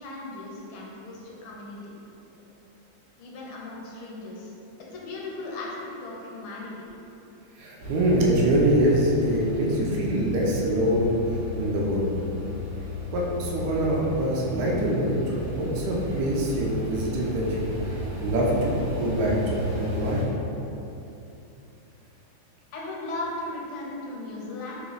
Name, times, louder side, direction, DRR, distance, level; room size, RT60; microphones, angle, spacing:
voice 1, 0.0-1.9 3.2-4.5 4.9-6.8 22.7-24.8, left 2 dB, 75° left, -3 dB, 1.5 m, -37 dB
voice 2, 7.6-11.1 11.6-12.1 13.1-20.2, right 1 dB, 80° right, -3 dB, 0.9 m, -24 dB
sound 1, 7.8-20.3, equal, 55° right, 1.4 m, -34 dB
3.4 x 3.0 x 3.9 m, 2.9 s
omnidirectional pair, 2.4 m